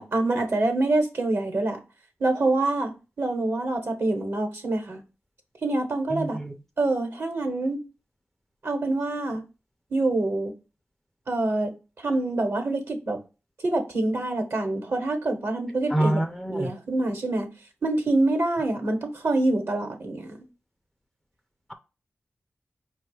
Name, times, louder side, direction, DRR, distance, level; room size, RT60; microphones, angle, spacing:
voice 1, 0.0-1.8 2.2-5.0 5.6-6.4 6.8-7.8 8.6-9.4 9.9-10.5 11.3-11.7 12.0-13.2 13.6-16.2 16.5-17.5 17.8-20.4, right 2 dB, 70° right, 1.1 m, -26 dB
voice 2, 6.1-6.5 15.9-16.7, right 1 dB, 5° left, 0.4 m, -26 dB
4.7 x 2.3 x 4.5 m
wide cardioid pair, 80°, 5 cm